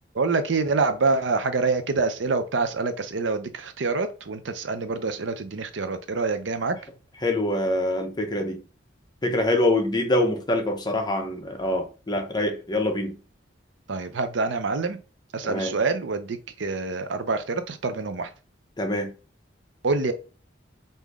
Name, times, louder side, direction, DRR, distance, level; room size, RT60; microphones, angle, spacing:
voice 1, 0.1-6.8 13.9-15.0 15.3-18.3 19.8-20.1, right 4 dB, 80° right, 0.6 m, -26 dB
voice 2, 7.2-8.6 9.2-13.2 15.4-15.7 18.8-19.1, left 1 dB, 20° left, 0.8 m, -25 dB
3.7 x 2.7 x 4.7 m
head